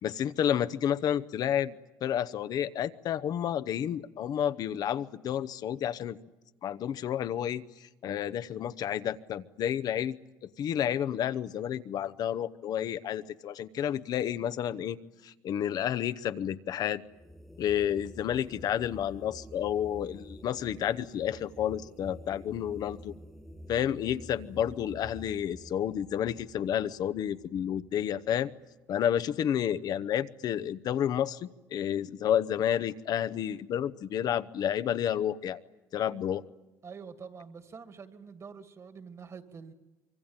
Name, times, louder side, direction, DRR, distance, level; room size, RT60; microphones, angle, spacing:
voice 1, 0.0-6.2 6.6-10.2 10.6-15.0 15.2-17.0 17.6-23.1 23.7-28.5 28.9-35.6 35.9-36.4, left 10 dB, 60° left, 14 dB, 0.9 m, -30 dB
sound 1, 17.1-28.4, equal, ahead, 1.6 m, -49 dB
voice 2, 36.8-39.7, right 5 dB, 40° right, 9 dB, 2.3 m, -46 dB
25.0 x 23.5 x 8.9 m, 1.1 s
supercardioid pair, 80°, 8 cm